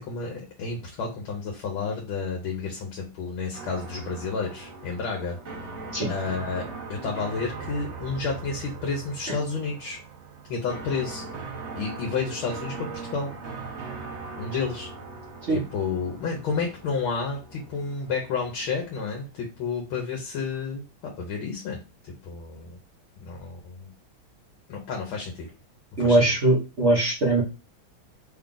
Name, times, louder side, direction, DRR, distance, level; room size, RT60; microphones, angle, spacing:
voice 1, 0.0-5.4 6.1-10.0 10.5-11.2 11.7-13.3 14.4-14.9 15.5-22.7 23.2-23.9 24.7-25.5 26.0-26.3, left 5 dB, 80° left, 0 dB, 1.7 m, -31 dB
sound 1, 3.5-19.5, right 4 dB, 65° right, 0.6 m, -40 dB
voice 2, 26.0-27.4, right 2 dB, 45° right, -4 dB, 1.0 m, -21 dB
3.8 x 2.4 x 3.8 m, 0.30 s
omnidirectional pair, 2.3 m